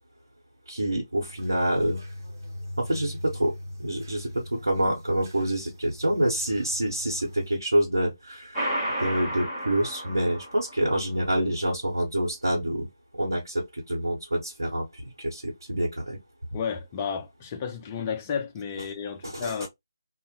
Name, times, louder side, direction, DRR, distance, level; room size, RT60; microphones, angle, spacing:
voice 1, 0.7-2.0 2.8-3.5 3.8-8.7 9.0-12.9 13.2-16.2 19.2-19.7, right 1 dB, 85° right, 0.8 m, -27 dB
sound 1, 1.2-7.6, left 1 dB, 55° right, 0.8 m, -41 dB
sound 2, 8.5-11.0, right 1 dB, 10° right, 1.0 m, -32 dB
voice 2, 16.5-19.7, left 6 dB, 20° left, 0.4 m, -32 dB
2.1 x 2.0 x 2.8 m
figure-of-eight pair, 160°, 2 cm